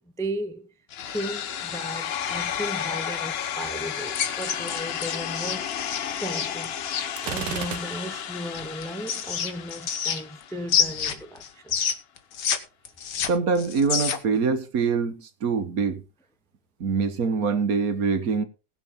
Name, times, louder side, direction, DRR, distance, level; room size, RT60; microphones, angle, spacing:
voice 1, 0.2-0.7 1.1-5.7 6.2-6.7 7.2-11.8, equal, 5° left, 0.5 m, -35 dB
sound 1, 0.9-10.9, left 9 dB, 55° left, 0.7 m, -33 dB
sound 2, 4.1-7.1 8.5-10.4 10.7-12.6 12.8-14.4, left 7 dB, 80° left, 1.9 m, -27 dB
Gunshot gunfire, 7.2-8.4, right 10 dB, 85° right, 1.5 m, -34 dB
voice 2, 13.3-16.0 16.8-18.4, right 5 dB, 60° right, 1.6 m, -24 dB
20.0 x 6.9 x 3.7 m
omnidirectional pair, 1.8 m